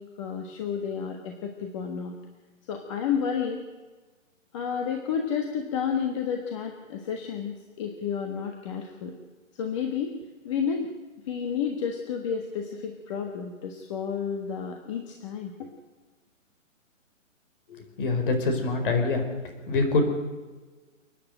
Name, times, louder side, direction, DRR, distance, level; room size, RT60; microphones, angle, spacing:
voice 1, 0.0-2.2 2.7-3.6 4.5-9.1 9.5-10.1 10.4-10.9 11.3-15.5, left 7 dB, 25° left, 3 dB, 1.4 m, -31 dB
voice 2, 17.7-19.2 19.7-20.1, left 3 dB, 40° left, 4 dB, 4.8 m, -25 dB
29.0 x 9.9 x 9.1 m, 1.3 s
hypercardioid pair, 165°, 40 cm